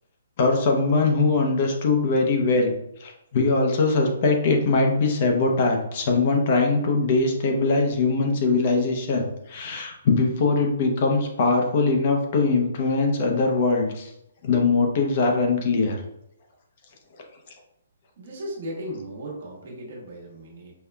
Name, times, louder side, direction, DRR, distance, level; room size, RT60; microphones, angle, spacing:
voice 1, 0.4-2.7 3.0-14.1 14.4-16.0, left 3 dB, 40° left, 2 dB, 0.6 m, -21 dB
voice 2, 18.2-20.8, equal, 55° right, -2 dB, 1.2 m, -36 dB
5.4 x 2.2 x 2.2 m, 0.80 s
hypercardioid pair, 160°, 0 cm